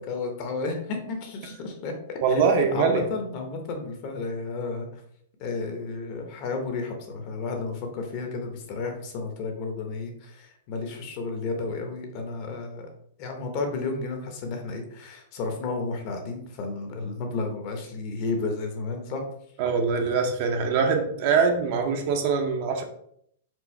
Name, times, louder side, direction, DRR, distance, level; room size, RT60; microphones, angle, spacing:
voice 1, 0.1-4.9 5.4-12.9 13.2-19.2, left 3 dB, 35° left, 3 dB, 0.8 m, -32 dB
voice 2, 2.2-3.0 19.6-22.8, right 5 dB, 40° right, 4 dB, 0.7 m, -23 dB
4.5 x 2.5 x 4.3 m, 0.69 s
supercardioid pair, 170°, 0 cm